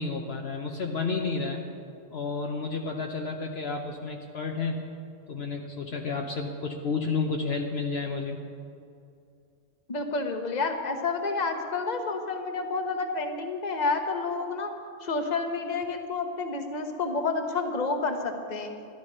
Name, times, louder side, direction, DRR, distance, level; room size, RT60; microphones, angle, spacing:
voice 1, 0.0-1.6 2.1-4.8 5.3-8.4, left 4 dB, 60° left, 2 dB, 1.1 m, -31 dB
voice 2, 9.9-14.7 15.0-18.7, left 3 dB, 35° left, 5 dB, 1.1 m, -29 dB
13.0 x 12.5 x 5.4 m, 2.4 s
omnidirectional pair, 1.3 m